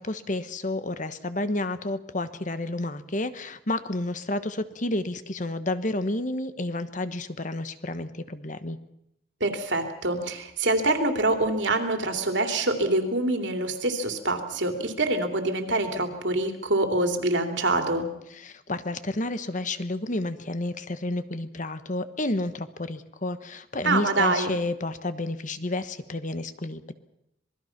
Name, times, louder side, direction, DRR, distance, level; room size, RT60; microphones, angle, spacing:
voice 1, 0.0-8.8 18.3-26.9, left 2 dB, 40° left, 11 dB, 1.1 m, -30 dB
voice 2, 9.4-18.1 23.8-24.5, right 2 dB, 70° right, 5 dB, 3.0 m, -25 dB
26.0 x 20.5 x 5.9 m, 0.80 s
head